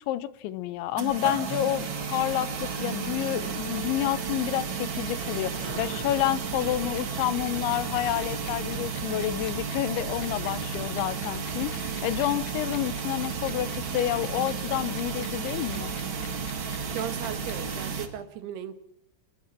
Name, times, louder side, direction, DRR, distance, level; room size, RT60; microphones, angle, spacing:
voice 1, 0.0-16.0, left 14 dB, 85° left, 15 dB, 3.3 m, -29 dB
sound 1, 1.0-18.1, right 5 dB, 40° right, 1.9 m, -33 dB
sound 2, 6.7-17.8, left 13 dB, 70° left, 2.7 m, -46 dB
voice 2, 16.9-18.7, right 10 dB, 70° right, 10 dB, 3.2 m, -36 dB
29.5 x 20.5 x 4.5 m, 0.80 s
omnidirectional pair, 5.2 m